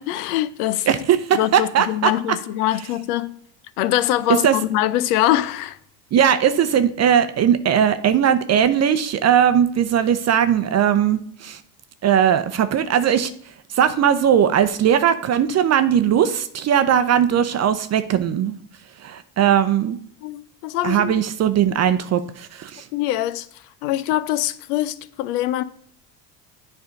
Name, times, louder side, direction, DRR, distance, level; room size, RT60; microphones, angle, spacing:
voice 1, 0.0-0.9 1.3-3.4 3.8-5.8 20.2-21.1 22.9-23.5 23.8-25.6, left 13 dB, 85° left, 0.6 m, -23 dB
voice 2, 0.9-2.4 4.4-4.6 6.1-11.6 12.0-13.3 13.7-18.6 19.0-20.0 20.8-22.9, right 9 dB, 35° right, 0.5 m, -19 dB
8.0 x 3.4 x 5.1 m
supercardioid pair, 90°, 45 cm